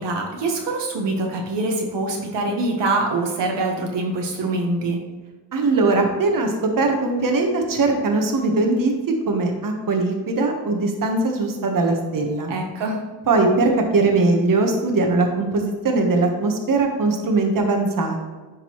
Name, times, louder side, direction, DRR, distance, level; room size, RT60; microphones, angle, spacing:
voice 1, 0.0-5.0 12.5-13.0, right 2 dB, 70° right, 1 dB, 1.2 m, -24 dB
voice 2, 5.5-12.5 13.3-18.2, right 3 dB, 45° right, 3 dB, 1.2 m, -20 dB
11.0 x 3.8 x 3.0 m, 1.3 s
cardioid pair, 75°, 44 cm